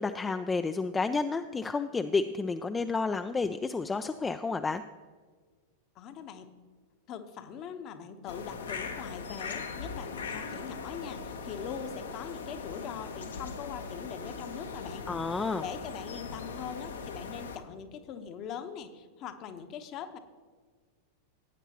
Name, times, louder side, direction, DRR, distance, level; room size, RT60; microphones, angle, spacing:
voice 1, 0.0-4.8 15.1-15.6, left 4 dB, 15° left, 9 dB, 0.3 m, -30 dB
voice 2, 5.9-6.5 7.1-15.1 15.3-20.2, left 8 dB, 35° left, 9 dB, 0.9 m, -42 dB
sound 1, 8.3-17.6, left 5 dB, 70° left, 0.9 m, -40 dB
17.5 x 9.0 x 2.9 m, 1.5 s
figure-of-eight pair, 90°, 0 cm